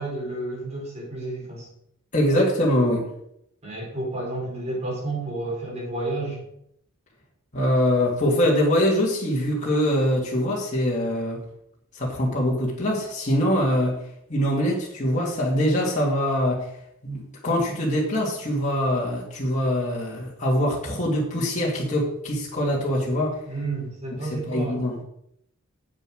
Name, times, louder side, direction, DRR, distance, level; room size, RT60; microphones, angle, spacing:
voice 1, 0.0-1.7 3.6-6.4 23.5-24.8, right 2 dB, 30° right, -3 dB, 5.0 m, -31 dB
voice 2, 2.1-3.1 7.5-11.4 11.9-14.0 14.3-16.7 17.0-23.4 24.3-25.0, equal, 35° left, -5 dB, 2.5 m, -23 dB
8.4 x 7.5 x 6.4 m, 0.73 s
head